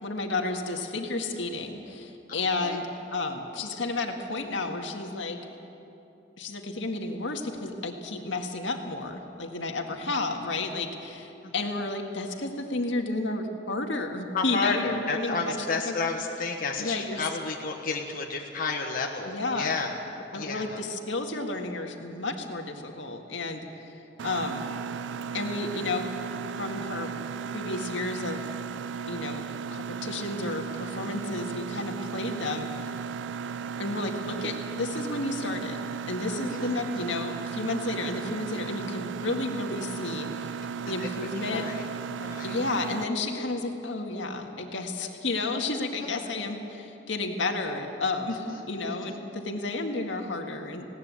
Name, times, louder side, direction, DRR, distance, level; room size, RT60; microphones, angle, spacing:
voice 1, 0.0-5.4 6.4-15.6 15.9-16.0 16.8-17.2 19.3-19.8 20.3-24.7 25.3-26.1 26.6-27.1 27.5-28.4 29.1-29.4 29.7-32.7 33.8-35.8 36.1-40.6 40.9-41.7 42.4-50.9, left 2 dB, 75° left, 3 dB, 1.9 m, -32 dB
voice 2, 2.3-2.8 11.4-11.5 14.3-20.0 20.3-20.8 36.5-36.7 36.9-37.1 40.8-41.1 41.5-41.8 42.2-42.6 46.0-46.5 48.3-49.2, left 4 dB, 50° left, 0 dB, 1.4 m, -32 dB
Mechanisms, 24.2-43.0, right 6 dB, 65° right, 0.4 m, -35 dB
20.0 x 17.5 x 8.4 m, 2.9 s
head